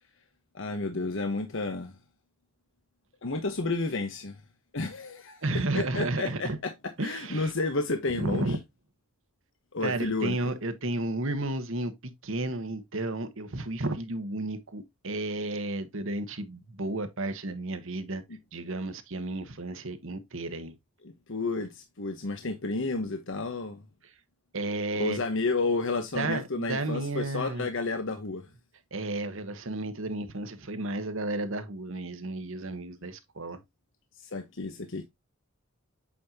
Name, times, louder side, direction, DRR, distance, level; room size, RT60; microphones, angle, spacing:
voice 1, 0.5-1.9 3.2-4.4 4.7-8.6 9.7-10.5 18.3-18.4 21.0-23.8 25.0-28.5 34.2-35.1, left 3 dB, 60° left, 1.1 m, -31 dB
voice 2, 5.4-6.6 7.0-7.5 8.2-8.6 9.8-18.2 18.5-20.7 24.5-25.2 26.1-27.7 28.9-33.6, right 2 dB, 65° right, 1.3 m, -32 dB
8.6 x 5.5 x 2.8 m
head